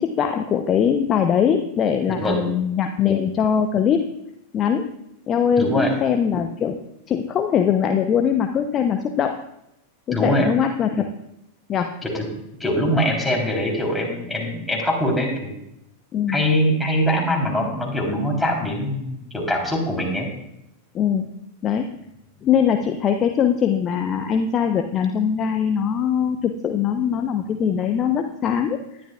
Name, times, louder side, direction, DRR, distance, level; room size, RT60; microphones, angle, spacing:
voice 1, 0.0-4.1 4.5-4.9 5.3-6.8 7.1-9.4 10.1-11.1 11.7-12.0 16.1-16.4 20.9-21.3 21.6-21.9 22.4-28.8, left 8 dB, 30° left, 6 dB, 0.7 m, -21 dB
voice 2, 5.6-5.9 10.1-10.5 12.0-12.3 12.6-15.5 16.3-20.3, equal, 5° left, -1 dB, 3.5 m, -22 dB
19.0 x 11.5 x 2.3 m, 0.82 s
figure-of-eight pair, 90°, 0 cm